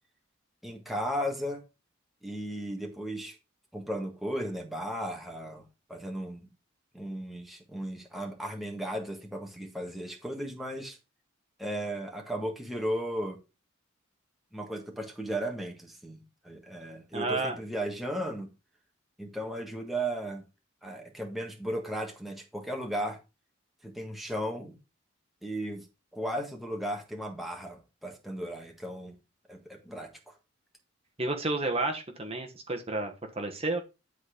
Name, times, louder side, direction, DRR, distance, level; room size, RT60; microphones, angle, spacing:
voice 1, 0.6-1.6 2.2-3.4 3.7-5.6 5.9-6.5 6.9-11.0 11.6-13.4 14.5-18.5 19.2-20.4 20.8-23.2 23.8-24.8 25.4-25.9 26.1-29.2 29.5-30.4, right 1 dB, ahead, 1.5 m, -35 dB
voice 2, 17.1-17.6 31.2-33.8, right 2 dB, 30° right, 1.3 m, -31 dB
10.5 x 4.2 x 4.9 m
head